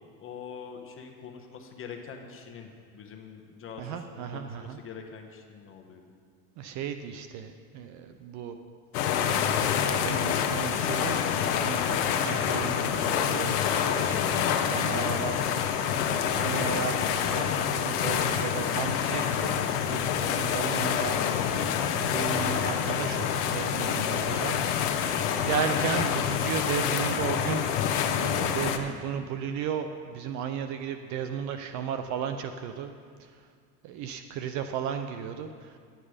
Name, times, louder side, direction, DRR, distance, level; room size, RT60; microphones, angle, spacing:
voice 1, 0.2-6.0, left 6 dB, 30° left, 3 dB, 1.2 m, -44 dB
voice 2, 3.8-4.8 6.6-8.6 9.0-9.2 9.5-11.2 11.6-15.4 16.1-21.7 22.0-24.6 25.3-27.9 28.2-32.9 33.2-33.5 33.8-35.8, right 8 dB, 40° right, 8 dB, 0.5 m, -35 dB
sound 1, 8.9-28.8, left 8 dB, 75° left, 1.0 m, -27 dB
10.5 x 9.0 x 5.0 m, 2.1 s
supercardioid pair, 120°, 46 cm